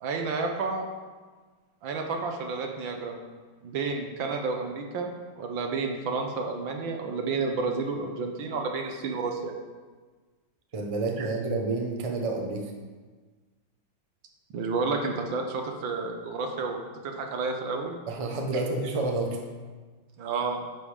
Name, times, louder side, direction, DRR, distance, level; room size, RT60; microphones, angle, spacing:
voice 1, 0.0-0.9 1.8-3.2 3.6-5.1 5.4-9.5 11.2-11.3 14.5-16.8 17.0-18.0 20.2-20.6, right 4 dB, 75° right, 3 dB, 1.8 m, -30 dB
voice 2, 10.7-12.7 18.1-19.4, right 3 dB, 25° right, 2 dB, 0.8 m, -29 dB
10.5 x 5.4 x 5.0 m, 1.4 s
omnidirectional pair, 2.1 m